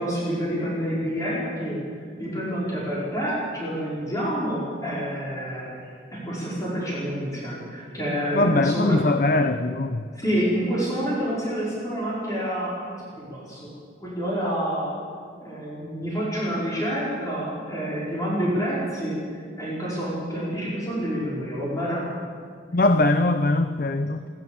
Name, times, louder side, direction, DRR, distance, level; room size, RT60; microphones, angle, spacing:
voice 1, 0.0-5.9 6.2-9.1 10.1-13.7 14.0-14.9 15.4-22.0, equal, 20° left, -8 dB, 5.1 m, -28 dB
voice 2, 8.3-10.1 22.7-24.3, left 2 dB, 45° left, 8 dB, 0.7 m, -21 dB
28.5 x 12.5 x 7.2 m, 2.2 s
head